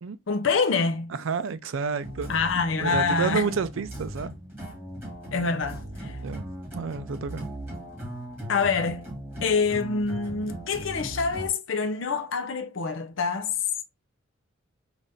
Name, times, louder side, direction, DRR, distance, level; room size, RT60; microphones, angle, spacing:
voice 1, 0.3-1.1 2.3-3.5 5.3-6.2 8.5-9.0 9.4-13.6, left 4 dB, 70° left, 0.6 m, -26 dB
voice 2, 1.1-2.3 2.8-4.3 6.2-6.4 6.8-7.5, right 5 dB, 75° right, 0.4 m, -29 dB
sound 1, 2.0-11.5, right 1 dB, 10° right, 2.1 m, -38 dB
4.1 x 2.5 x 3.4 m
head